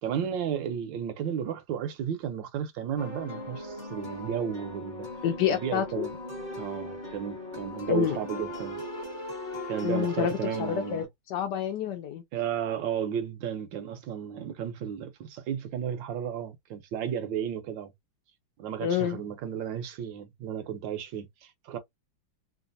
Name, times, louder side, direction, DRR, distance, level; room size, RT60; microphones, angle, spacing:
voice 1, 0.0-5.1 5.5-6.1 6.6-8.8 9.7-11.0 12.3-17.9 18.6-21.8, right 8 dB, 70° right, 1.2 m, -33 dB
sound 1, 3.0-11.0, left 1 dB, 30° left, 0.9 m, -39 dB
voice 2, 5.2-6.1 7.9-8.2 9.8-12.2 18.8-19.2, left 9 dB, 75° left, 0.9 m, -28 dB
3.3 x 2.4 x 2.6 m
omnidirectional pair, 2.3 m